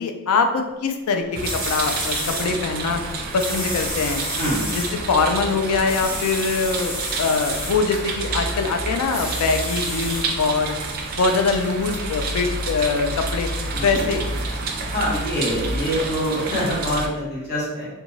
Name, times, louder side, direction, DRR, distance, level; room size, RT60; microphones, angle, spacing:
voice 1, 0.0-3.0 3.3-4.3 4.7-10.8 11.2-13.5 13.8-14.2, left 4 dB, 85° left, 5 dB, 0.4 m, -23 dB
sound 1, 1.1-1.2 1.4-2.5 3.4-4.9 5.8-7.7 9.1-10.2 10.9-11.0, equal, 15° left, 0.9 m, -30 dB
sound 2, 1.3-17.1, right 3 dB, 45° right, 0.3 m, -29 dB
voice 2, 14.9-17.9, equal, 45° left, -7 dB, 0.9 m, -25 dB
2.5 x 2.2 x 3.0 m, 1.1 s
head